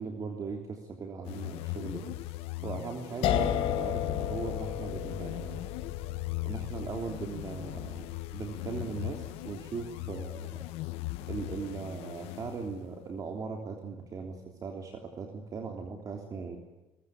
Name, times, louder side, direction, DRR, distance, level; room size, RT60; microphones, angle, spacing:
voice 1, 0.0-2.1 2.6-5.6 6.4-8.1 8.3-10.6 11.2-16.6, right 5 dB, 35° right, 3 dB, 3.3 m, -39 dB
sound 1, 1.3-13.0, left 19 dB, 85° left, 0.9 m, -39 dB
sound 2, 3.2-10.2, left 10 dB, 70° left, 3.3 m, -34 dB
22.0 x 21.5 x 9.8 m, 1.1 s
cardioid pair, 130°, 10 cm